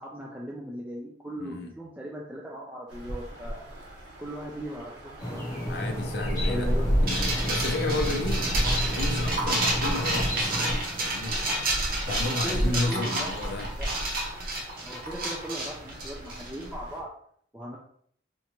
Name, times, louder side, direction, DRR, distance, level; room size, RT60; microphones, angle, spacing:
voice 1, 0.0-3.6 4.2-5.4 6.5-7.0 12.1-13.9 14.8-17.1 17.5-17.8, equal, 5° right, -4 dB, 0.4 m, -38 dB
voice 2, 1.4-1.7 5.7-8.4 8.9-11.4 12.1-13.7, left 2 dB, 55° left, 3 dB, 0.5 m, -32 dB
sound 1, 2.9-17.0, equal, 65° right, 1.4 m, -33 dB
sound 2, 5.2-10.8, equal, 15° left, 1.0 m, -33 dB
sound 3, 7.1-16.6, right 2 dB, 45° right, 0.9 m, -30 dB
4.4 x 2.5 x 2.9 m, 0.63 s
head